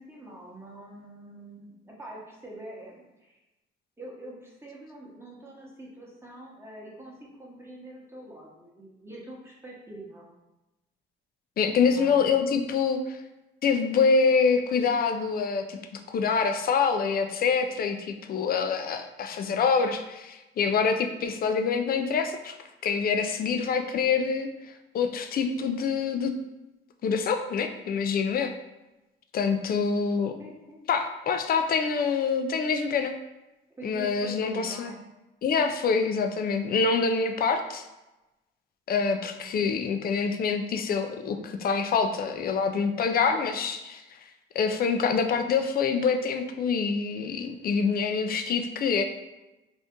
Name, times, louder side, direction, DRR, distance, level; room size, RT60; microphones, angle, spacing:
voice 1, 0.0-3.4 4.0-10.3 11.8-12.4 30.4-30.8 33.8-35.0 39.4-39.5 43.4-43.5, right 1 dB, 10° right, -4 dB, 0.9 m, -44 dB
voice 2, 11.6-13.2 13.6-22.6 22.8-26.3 27.0-28.5 29.3-30.3 30.9-33.2 33.8-34.9 35.4-37.8 38.9-44.0 44.5-49.0, left 5 dB, 50° left, 6 dB, 0.4 m, -26 dB
2.6 x 2.4 x 3.5 m, 1.0 s
cardioid pair, 90°, 20 cm